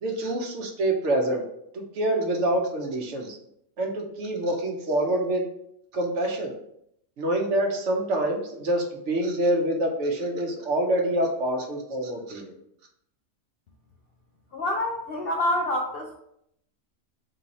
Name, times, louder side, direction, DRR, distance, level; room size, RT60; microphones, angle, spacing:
voice 1, 0.0-1.4 1.7-3.4 3.8-5.4 5.9-6.5 7.2-12.5, right 1 dB, 60° right, 1 dB, 1.0 m, -26 dB
voice 2, 14.5-16.1, left 1 dB, 65° left, 0 dB, 0.6 m, -27 dB
3.8 x 2.7 x 4.1 m, 0.74 s
omnidirectional pair, 1.5 m